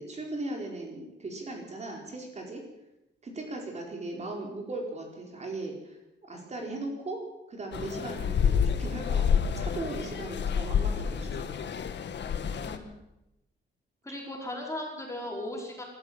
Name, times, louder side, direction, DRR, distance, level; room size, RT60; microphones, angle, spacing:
voice 1, 0.0-2.6 3.2-6.0 6.3-11.5, right 2 dB, 35° right, 1 dB, 4.6 m, -38 dB
sound 1, 7.7-12.8, left 7 dB, 70° left, 1.7 m, -28 dB
voice 2, 12.6-12.9 14.0-15.8, left 1 dB, 15° left, -1 dB, 5.2 m, -37 dB
25.0 x 14.0 x 7.5 m, 0.89 s
wide cardioid pair, 160°, 19 cm